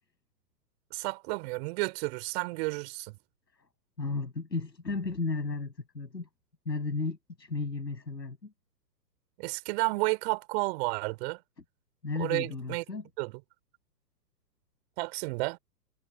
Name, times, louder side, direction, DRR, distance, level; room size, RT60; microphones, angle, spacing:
voice 1, 0.9-3.2 9.4-11.4 12.2-12.8 13.2-13.3 15.0-15.6, right 26 dB, 40° right, 3.5 m, -31 dB
voice 2, 4.0-6.3 6.6-8.5 12.0-13.1, left 3 dB, 85° left, 7.9 m, -34 dB
figure-of-eight pair, 115°, 49 cm